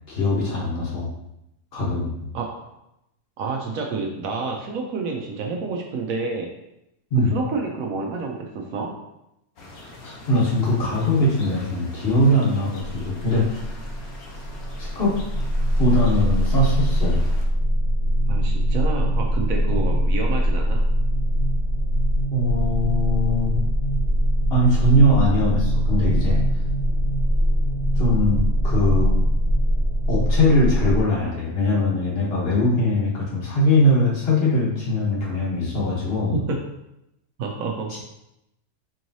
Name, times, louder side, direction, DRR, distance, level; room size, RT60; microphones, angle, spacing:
voice 1, 0.1-1.1 1.7-2.1 7.1-7.3 10.0-13.8 14.8-15.2 15.8-17.2 19.7-19.8 22.3-23.6 24.5-26.4 27.9-29.2 30.1-36.3, left 1 dB, 40° left, -5 dB, 1.1 m, -21 dB
voice 2, 2.3-2.7 3.4-6.5 7.2-8.9 18.3-20.8 36.3-36.6 37.4-37.9, right 4 dB, 70° right, 1 dB, 0.9 m, -28 dB
sound 1, 9.6-17.5, left 2 dB, 70° left, 1.2 m, -42 dB
sound 2, 12.8-31.0, equal, 85° left, 0.5 m, -22 dB
4.6 x 3.0 x 2.6 m, 0.84 s
omnidirectional pair, 1.7 m